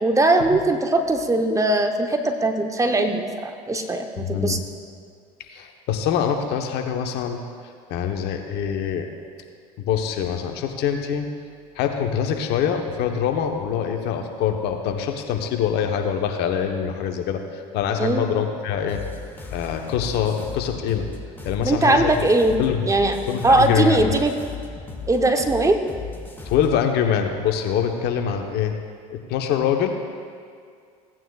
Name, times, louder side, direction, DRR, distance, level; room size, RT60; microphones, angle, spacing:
voice 1, 0.0-4.6 18.0-18.3 21.6-22.5 22.9-23.2 23.4-24.3 25.1-25.8, right 2 dB, 15° right, 5 dB, 0.9 m, -20 dB
voice 2, 4.2-4.6 5.5-7.4 7.9-9.1 9.8-11.3 11.8-19.0 19.5-21.1 21.4-22.3 22.6-22.9 23.3-24.1 26.5-28.7 29.1-30.0, left 8 dB, 60° left, 4 dB, 1.0 m, -24 dB
sound 1, 18.9-26.8, left 4 dB, 10° left, 1.5 m, -36 dB
16.0 x 9.0 x 2.4 m, 2.2 s
hypercardioid pair, 75°, 19 cm